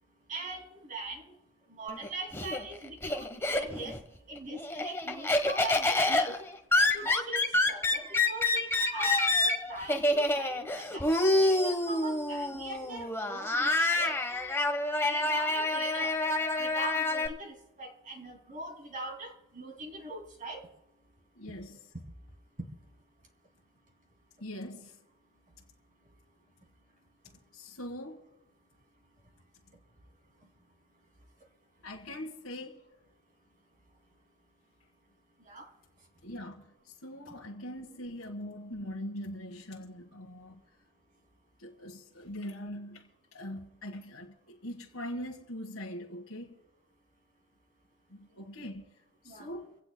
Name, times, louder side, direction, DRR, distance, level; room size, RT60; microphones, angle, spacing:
voice 1, 0.3-1.3 1.7-4.0 4.3-6.4 6.8-14.2 15.0-16.1 16.6-20.7 22.6-22.7 35.5-35.7 49.3-49.5, right 2 dB, 40° right, 2.7 m, -41 dB
Laughter, 1.9-4.0 4.4-17.3, left 2 dB, 10° left, 1.1 m, -28 dB
voice 2, 21.3-21.8 24.4-25.0 27.2-28.2 31.8-32.8 36.2-40.6 41.6-46.6 48.1-48.9 49.2-49.8, left 1 dB, 75° left, 1.6 m, -42 dB
25.5 x 17.0 x 2.2 m
head